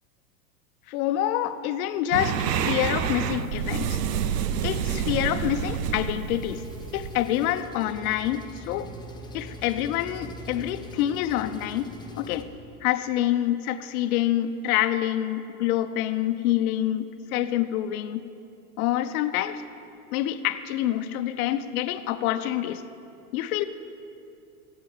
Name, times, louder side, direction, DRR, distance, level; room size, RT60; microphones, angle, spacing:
voice 1, 0.9-4.0 4.6-6.7 6.9-8.9 9.3-12.5 12.8-18.3 18.8-19.6 20.1-22.8 23.3-23.6, left 12 dB, 60° left, 10 dB, 0.9 m, -27 dB
sound 1, 2.1-7.6, right 8 dB, 80° right, 0.9 m, -28 dB
Engine, 6.4-12.4, left 1 dB, 10° left, 1.0 m, -42 dB
16.0 x 7.9 x 7.4 m, 2.7 s
hypercardioid pair, 115°, 48 cm